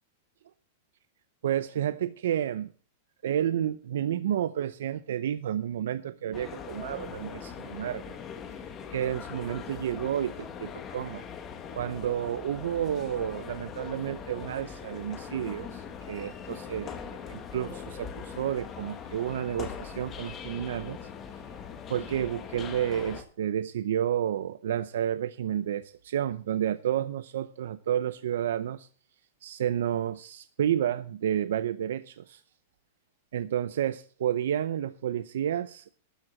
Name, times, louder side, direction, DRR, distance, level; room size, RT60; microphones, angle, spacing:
voice 1, 1.4-2.7 3.2-8.2 8.9-11.2 11.7-17.0 17.3-21.0 21.9-28.9 29.4-32.4 33.3-35.9, right 10 dB, 80° right, 13 dB, 0.7 m, -30 dB
sound 1, 6.3-23.2, left 7 dB, 20° left, 1.6 m, -41 dB
12.5 x 7.7 x 7.5 m, 0.41 s
supercardioid pair, 165°, 0 cm